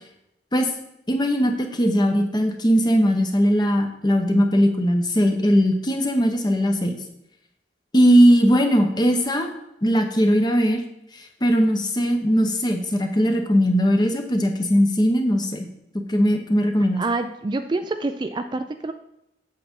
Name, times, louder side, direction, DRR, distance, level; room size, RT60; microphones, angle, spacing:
voice 1, 1.1-6.9 7.9-9.5 9.8-10.8 11.2-15.7 16.1-17.0, equal, 25° left, 4 dB, 0.9 m, -19 dB
voice 2, 17.0-18.9, right 3 dB, 25° right, 8 dB, 0.3 m, -27 dB
7.8 x 7.2 x 3.7 m, 0.81 s
head